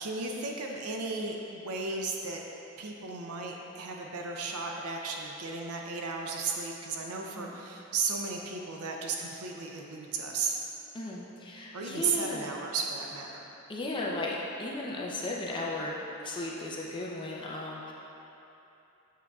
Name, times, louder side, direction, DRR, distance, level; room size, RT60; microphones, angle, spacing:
voice 1, 0.0-2.4 2.8-10.6 11.7-13.5, right 4 dB, 85° right, 1 dB, 0.6 m, -34 dB
voice 2, 10.9-12.5 13.7-16.0 16.2-17.9, left 2 dB, 20° left, -3 dB, 0.5 m, -36 dB
7.5 x 6.7 x 2.3 m, 2.9 s
head